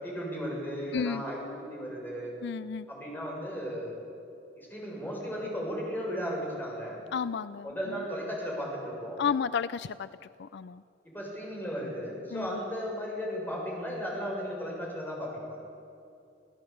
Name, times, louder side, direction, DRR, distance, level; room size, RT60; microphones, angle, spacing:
voice 1, 0.0-2.3 2.9-3.9 4.6-7.0 7.6-9.2 11.0-15.6, equal, 10° left, -3 dB, 7.0 m, -35 dB
voice 2, 0.9-1.2 2.4-2.9 7.1-8.0 9.2-10.1 10.4-10.8 12.3-12.5, left 6 dB, 65° left, 15 dB, 0.4 m, -32 dB
28.0 x 16.5 x 8.7 m, 2.6 s
head